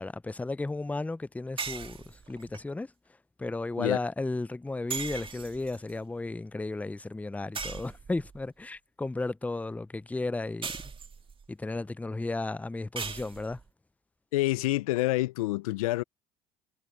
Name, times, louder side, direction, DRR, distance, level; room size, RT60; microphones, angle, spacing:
voice 1, 0.0-2.9 3.4-10.7 11.5-13.6, left 2 dB, 10° left, 0.6 m, -34 dB
sound 1, 1.6-2.6 4.9-5.9 7.6-8.4 10.6-11.5 13.0-13.7, right 5 dB, 30° right, 2.1 m, -38 dB
voice 2, 14.3-16.0, left 18 dB, 85° left, 0.7 m, -27 dB
hypercardioid pair, 70°, 18 cm